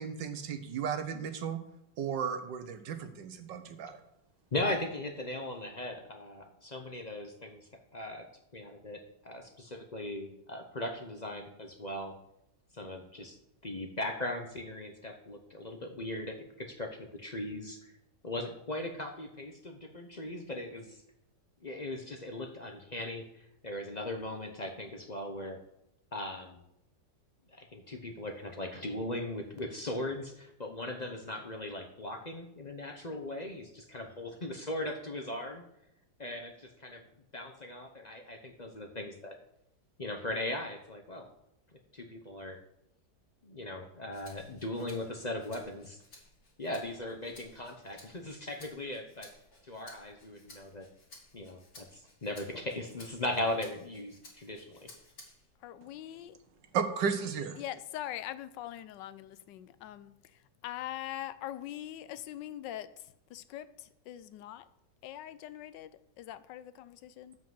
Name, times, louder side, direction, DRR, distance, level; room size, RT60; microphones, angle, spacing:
voice 1, 0.0-1.6 2.0-4.0 56.7-57.6, right 7 dB, 85° right, 8 dB, 1.7 m, -34 dB
voice 2, 4.5-8.3 8.5-12.1 12.7-13.4 13.6-17.9 18.2-21.0 21.6-25.6 26.1-26.6 27.5-35.6 36.2-37.0 37.3-39.4 40.0-41.3 41.9-42.6 43.4-46.0 46.6-49.3 49.6-50.9 51.3-54.9, left 1 dB, 35° left, 4 dB, 0.7 m, -38 dB
Rattle (instrument), 44.1-55.6 56.0-57.2, left 2 dB, 55° left, 2.8 m, -57 dB
voice 3, 55.6-56.4 57.6-64.7 65.0-67.4, left 12 dB, 85° left, 14 dB, 1.3 m, -43 dB
7.6 x 5.9 x 7.5 m, 0.81 s
omnidirectional pair, 1.9 m